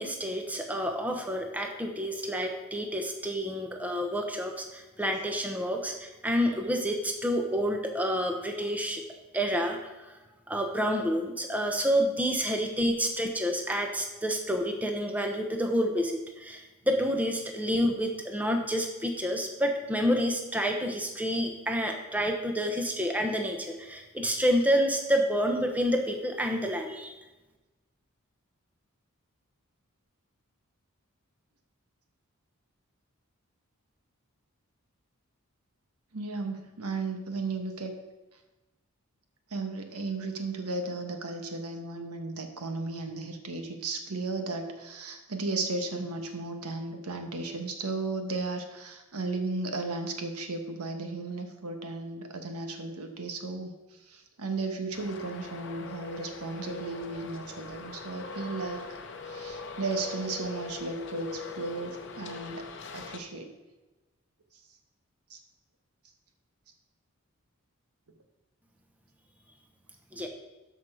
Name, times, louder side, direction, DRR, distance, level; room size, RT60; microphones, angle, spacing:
voice 1, 0.0-9.0 9.3-10.2 10.5-27.2 70.1-70.3, equal, 5° right, 3 dB, 0.9 m, -29 dB
voice 2, 36.1-37.9 39.5-53.7 54.1-58.8 59.3-62.7 62.9-63.5 65.3-65.4 70.1-70.2, right 3 dB, 85° right, 5 dB, 1.3 m, -35 dB
Traffic noise roadway noise, 54.9-63.2, left 4 dB, 55° left, 0.8 m, -42 dB
13.0 x 5.4 x 4.9 m, 1.1 s
head